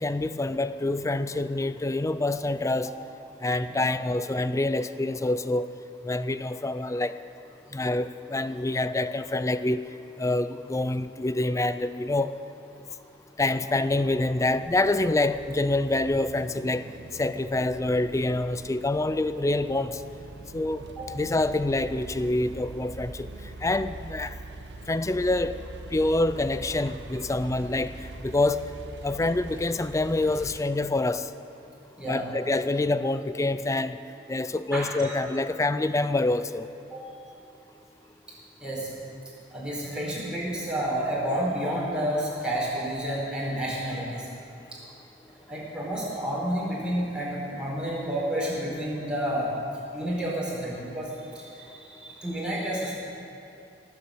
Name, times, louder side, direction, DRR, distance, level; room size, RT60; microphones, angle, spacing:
voice 1, 0.0-2.9 3.4-5.7 6.0-7.2 7.7-9.9 10.2-12.4 13.4-16.9 17.2-20.0 20.5-20.9 21.1-23.3 23.6-24.3 24.9-25.6 25.9-27.9 28.2-28.6 29.0-31.3 32.0-34.0 34.3-36.7, left 2 dB, 15° left, 13 dB, 0.4 m, -26 dB
sound 1, 13.9-30.6, right 2 dB, 70° right, 0.8 m, -43 dB
voice 2, 34.7-35.2 36.9-37.0 38.6-38.9 39.5-44.3 44.7-44.8 45.5-49.5 49.9-51.1 51.3-52.9, right 1 dB, 5° right, -6 dB, 4.5 m, -30 dB
18.0 x 8.3 x 7.9 m, 2.7 s
head